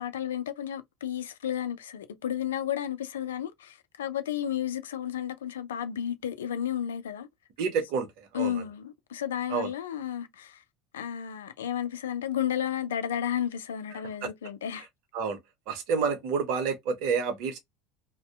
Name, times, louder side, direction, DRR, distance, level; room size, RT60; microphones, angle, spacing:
voice 1, 0.0-7.3 8.3-10.6 10.9-14.9, left 10 dB, 85° left, 0.4 m, -32 dB
voice 2, 7.6-8.6 9.5-9.7 14.2-14.3 15.1-15.4 15.7-17.6, right 5 dB, 65° right, 0.8 m, -29 dB
2.6 x 2.1 x 2.3 m
hypercardioid pair, 80°, 0 cm